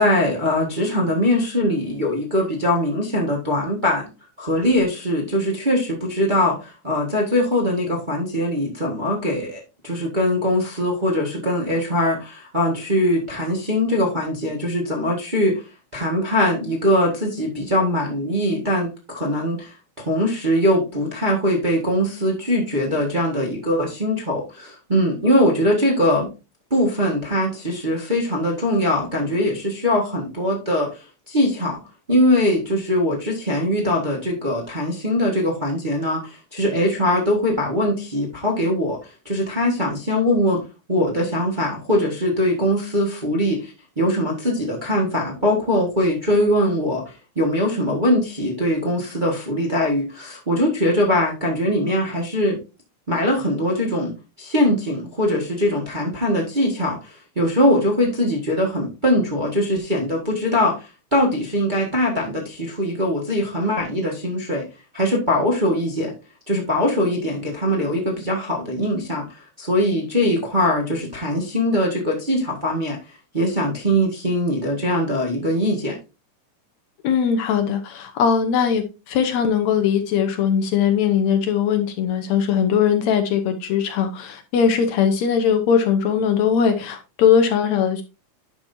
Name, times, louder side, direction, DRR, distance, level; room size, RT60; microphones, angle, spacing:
voice 1, 0.0-4.1 4.4-15.5 15.9-26.3 26.7-31.8 32.1-40.6 40.9-52.6 53.1-54.1 54.4-64.6 64.9-66.1 66.5-73.0 73.3-76.0, left 1 dB, 25° right, -2 dB, 1.2 m, -21 dB
voice 2, 77.0-88.0, left 7 dB, 70° left, 6 dB, 2.0 m, -20 dB
10.5 x 6.2 x 2.7 m, 0.29 s
omnidirectional pair, 3.5 m